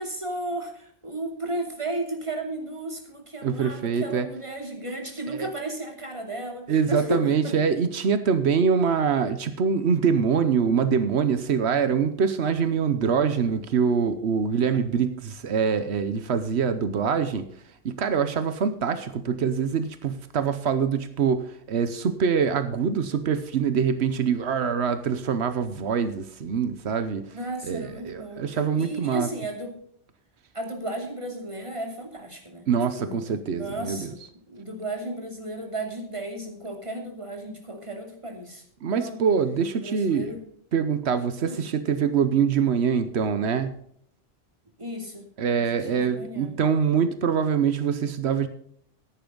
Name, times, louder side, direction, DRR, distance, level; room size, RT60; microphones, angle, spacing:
voice 1, 0.0-7.5 14.7-14.8 27.3-28.4 28.7-29.7 30.5-32.7 33.0-34.2 34.5-39.2 39.8-40.4 41.4-41.6 44.8-45.3 45.6-46.5, right 1 dB, 30° right, 2 dB, 2.9 m, -34 dB
voice 2, 3.4-4.3 5.3-5.5 6.7-17.5 17.8-27.4 27.6-29.3 32.7-34.1 38.8-40.3 40.7-43.8 45.4-48.5, right 6 dB, 90° right, 10 dB, 1.2 m, -24 dB
14.5 x 10.5 x 3.9 m, 0.63 s
omnidirectional pair, 1.1 m